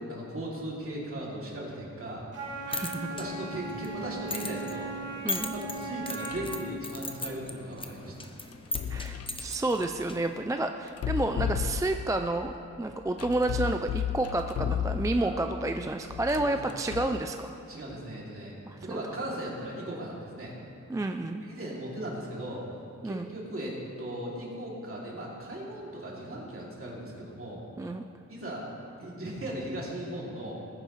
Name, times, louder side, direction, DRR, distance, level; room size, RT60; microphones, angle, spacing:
voice 1, 0.1-2.2 3.1-4.9 5.5-8.3 15.2-15.3 16.3-16.6 17.7-18.5 18.8-20.5 21.4-22.7 23.0-27.6 28.3-28.7 29.0-30.6, right 1 dB, 45° right, -4 dB, 2.7 m, -37 dB
Wind instrument woodwind instrument, 2.3-6.8, right 3 dB, 90° right, 2.5 m, -38 dB
sound 1, 2.4-10.5, left 2 dB, 15° left, 0.7 m, -39 dB
voice 2, 2.7-3.1 5.2-5.5 8.9-17.5 18.7-19.0 20.9-21.5 23.0-23.3 27.8-28.0, right 2 dB, 10° right, 6 dB, 0.3 m, -30 dB
sound 2, 6.3-6.6 8.5-9.4 10.9-12.2 13.2-15.4 16.1-17.2, left 8 dB, 55° left, 0.4 m, -33 dB
19.5 x 9.6 x 3.1 m, 2.7 s
wide cardioid pair, 145°, 30 cm